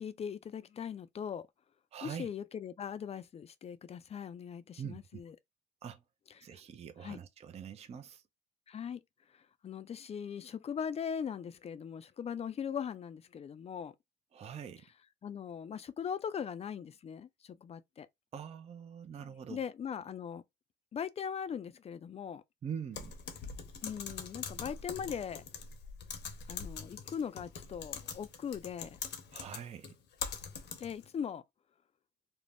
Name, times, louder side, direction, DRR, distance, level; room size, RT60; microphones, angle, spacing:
voice 1, 0.0-1.5 2.0-5.3 6.4-6.5 7.0-7.2 8.7-9.0 9.6-13.9 15.2-18.1 19.5-20.4 20.9-22.4 23.8-25.4 26.5-29.0 30.8-31.4, left 7 dB, 30° left, 0.4 m, -40 dB
voice 2, 1.9-2.3 4.8-5.2 5.8-6.0 6.4-8.2 14.3-14.9 18.3-19.6 22.6-23.1 29.3-30.0, right 8 dB, 30° right, 0.4 m, -44 dB
Typing, 22.9-31.1, left 6 dB, 55° left, 0.7 m, -43 dB
2.6 x 2.1 x 3.3 m
cardioid pair, 90°, 21 cm